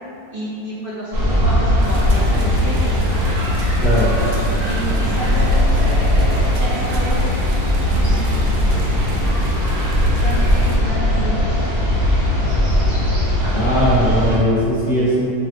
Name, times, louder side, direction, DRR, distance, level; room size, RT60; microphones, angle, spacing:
voice 1, 0.3-3.0 4.6-7.3 7.9-9.2 10.2-11.6, right 1 dB, 40° right, -10 dB, 1.0 m, -30 dB
sound 1, 1.1-14.4, left 1 dB, 80° right, 1.4 m, -18 dB
sound 2, 1.8-10.8, right 2 dB, 65° right, 0.7 m, -34 dB
voice 2, 3.8-4.1 13.5-15.3, equal, 40° left, -11 dB, 0.8 m, -18 dB
sound 3, 5.1-9.4, left 2 dB, 65° left, 1.0 m, -27 dB
5.0 x 2.3 x 3.3 m, 2.6 s
omnidirectional pair, 1.5 m